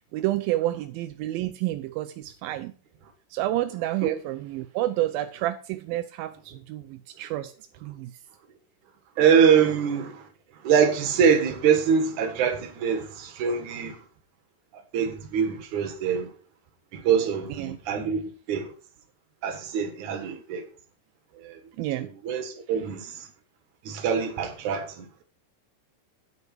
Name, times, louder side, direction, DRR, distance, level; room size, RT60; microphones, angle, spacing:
voice 1, 0.1-2.7 3.3-7.5 7.8-8.1 17.5-17.8 20.3-20.4 21.8-22.1, right 15 dB, 80° right, 2.1 m, -29 dB
voice 2, 9.2-10.3 10.6-14.0 14.9-16.3 16.9-18.2 18.5-18.7 19.4-20.7 21.4-21.6 22.0-23.3 23.8-25.1, right 7 dB, 55° right, 2.6 m, -24 dB
9.8 x 8.3 x 4.8 m
omnidirectional pair, 4.7 m